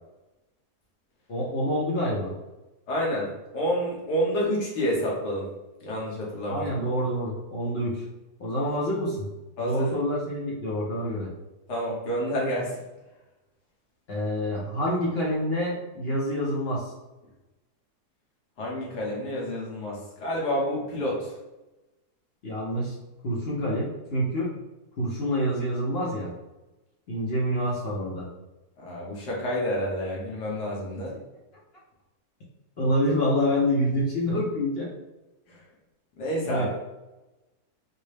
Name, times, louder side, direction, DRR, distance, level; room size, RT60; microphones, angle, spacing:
voice 1, 1.3-2.3 6.5-8.0 8.4-9.3 9.6-11.3 14.1-16.9 22.4-22.9 23.2-24.5 25.0-26.3 27.1-28.3 32.8-34.9 36.4-36.8, equal, 55° left, -5 dB, 0.7 m, -27 dB
voice 2, 2.9-3.3 3.5-5.5 5.8-6.7 9.6-9.9 11.7-12.8 18.6-21.3 28.8-31.2 35.5-35.6 36.2-36.8, equal, 85° left, -4 dB, 1.7 m, -29 dB
4.2 x 2.0 x 3.2 m, 1.0 s
omnidirectional pair, 1.7 m